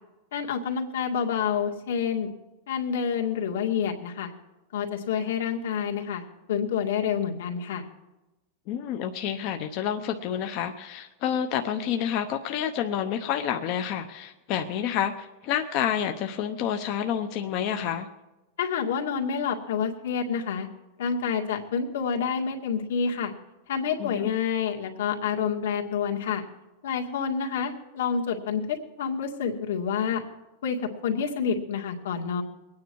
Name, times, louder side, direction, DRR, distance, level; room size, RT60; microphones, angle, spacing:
voice 1, 0.3-2.3 2.7-4.3 4.7-6.2 6.5-7.9 18.6-20.7 21.0-23.3 23.7-26.4 26.8-30.2 30.6-30.8 31.0-32.4, left 7 dB, 85° left, 3 dB, 2.1 m, -28 dB
voice 2, 8.7-18.1 24.0-24.3, left 9 dB, 45° left, 6 dB, 0.8 m, -29 dB
23.0 x 9.6 x 4.7 m, 1.1 s
supercardioid pair, 155°, 0 cm